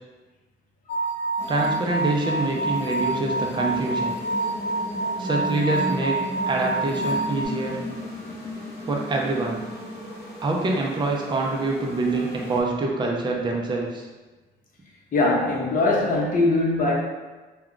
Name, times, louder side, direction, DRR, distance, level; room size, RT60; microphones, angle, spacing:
sound 1, 0.9-7.5, right 2 dB, 65° left, 0.4 m, -27 dB
sound 2, 1.4-12.6, equal, 15° left, 1.0 m, -35 dB
voice 1, 1.5-4.2 5.2-6.2 6.5-7.8 8.9-9.6 10.4-14.1, right 2 dB, 25° right, -1 dB, 0.5 m, -25 dB
voice 2, 15.1-16.9, left 2 dB, 45° left, -3 dB, 0.8 m, -21 dB
2.3 x 2.3 x 3.6 m, 1.3 s
cardioid pair, 90°, 20 cm